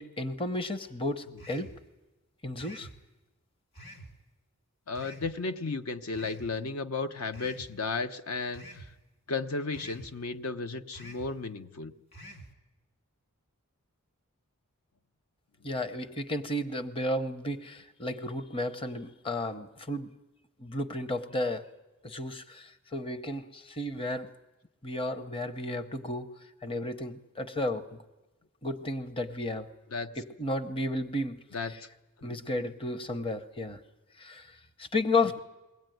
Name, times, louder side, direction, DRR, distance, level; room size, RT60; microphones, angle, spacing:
voice 1, 0.0-1.7 2.4-2.9 15.6-20.1 20.6-21.7 22.0-24.3 24.8-26.3 26.6-28.0 28.6-29.7 30.2-31.4 32.2-33.8 34.2-35.4, left 2 dB, 25° left, 10 dB, 0.8 m, -33 dB
sound 1, 1.4-1.8 2.6-3.0 3.8-4.1 5.0-5.3 6.1-6.5 7.3-7.7 8.5-8.9 9.7-10.1 10.9-11.3 12.1-12.5, right 1 dB, 45° left, 2.4 m, -47 dB
voice 2, 4.9-8.9 9.3-11.9 29.9-30.1 31.5-31.8 32.2-32.4, left 4 dB, 70° left, 8 dB, 0.8 m, -34 dB
22.0 x 17.0 x 9.2 m, 1.1 s
head